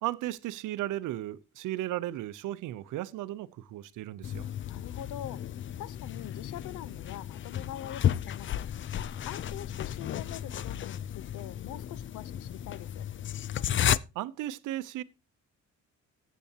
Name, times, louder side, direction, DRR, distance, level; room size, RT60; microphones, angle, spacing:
voice 1, 0.0-4.5 13.8-15.0, right 14 dB, 85° right, 0.7 m, -35 dB
sound 1, 4.2-14.0, left 10 dB, 40° left, 0.4 m, -33 dB
voice 2, 4.6-9.0 9.3-13.0, left 12 dB, 85° left, 0.7 m, -44 dB
14.0 x 8.3 x 2.8 m
cardioid pair, 90°, 30 cm